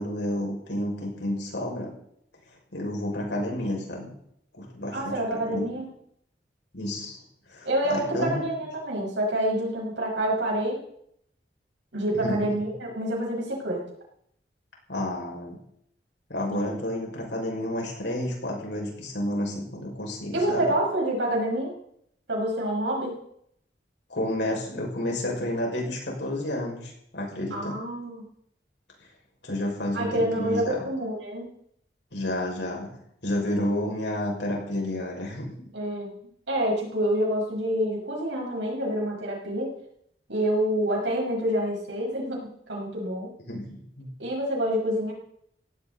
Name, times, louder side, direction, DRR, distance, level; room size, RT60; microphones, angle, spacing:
voice 1, 0.0-1.9 2.7-4.1 4.5-5.7 6.7-7.2 7.5-8.4 12.2-12.6 14.9-15.6 16.3-20.7 24.1-27.8 29.4-30.9 32.1-32.9 33.2-35.5 43.5-44.1, left 1 dB, 80° left, -1 dB, 6.0 m, -30 dB
voice 2, 4.9-5.9 7.6-10.8 11.9-13.8 16.5-16.8 20.3-21.7 22.3-23.2 27.5-28.3 29.9-31.5 35.7-36.1 36.5-39.7 40.3-43.3 44.2-45.1, right 1 dB, 85° right, -1 dB, 5.7 m, -27 dB
17.0 x 16.5 x 4.1 m, 0.73 s
head